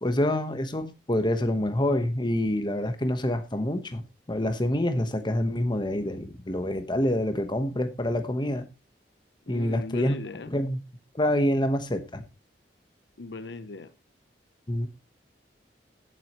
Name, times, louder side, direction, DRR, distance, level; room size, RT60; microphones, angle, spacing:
voice 1, 0.0-4.0 4.3-8.7 9.5-10.2 10.5-10.8 11.1-12.2 14.7-14.9, left 1 dB, 25° left, 1.1 m, -26 dB
voice 2, 9.5-10.5 13.2-13.9, left 3 dB, 75° left, 0.8 m, -38 dB
17.0 x 7.7 x 3.0 m
head